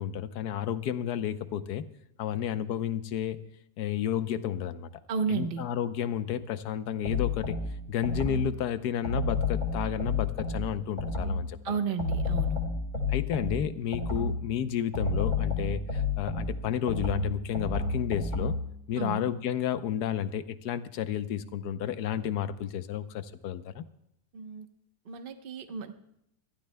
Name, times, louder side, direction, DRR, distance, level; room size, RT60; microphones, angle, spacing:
voice 1, 0.0-1.8 2.2-3.4 3.8-4.9 5.3-7.6 7.9-11.8 13.1-18.5 18.9-23.8, left 9 dB, 80° left, 12 dB, 1.3 m, -31 dB
voice 2, 5.1-5.7 11.6-12.6 19.0-19.3 24.3-24.7 25.0-25.9, right 6 dB, 40° right, 7 dB, 1.0 m, -32 dB
sound 1, 7.0-8.6 9.0-11.5 12.0-14.5 14.9-18.7, left 3 dB, 60° left, 3.6 m, -30 dB
23.0 x 15.0 x 2.2 m, 0.77 s
omnidirectional pair, 1.7 m